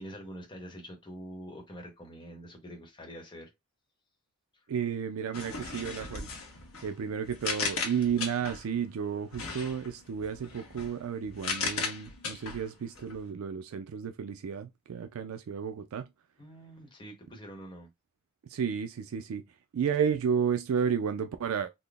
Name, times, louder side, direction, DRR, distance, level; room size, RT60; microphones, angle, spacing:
voice 1, 0.0-3.5 4.5-4.6 16.4-17.9, equal, 20° left, 1.0 m, -45 dB
voice 2, 4.7-6.3 6.8-16.1 18.4-19.4 19.7-21.7, right 7 dB, 65° right, 0.4 m, -32 dB
sound 1, 5.3-8.7 9.3-13.2, left 4 dB, 70° left, 1.0 m, -37 dB
4.0 x 2.0 x 3.3 m
head